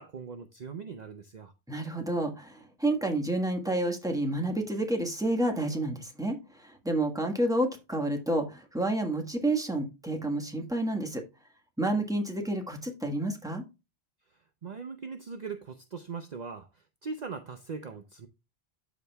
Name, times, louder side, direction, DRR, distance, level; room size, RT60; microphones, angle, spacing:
voice 1, 0.0-1.5 14.6-16.7 17.0-18.3, right 5 dB, 45° right, 0.7 m, -40 dB
voice 2, 1.7-11.2 11.8-13.6, right 1 dB, 5° right, 1.4 m, -29 dB
13.0 x 4.9 x 2.3 m
omnidirectional pair, 1.1 m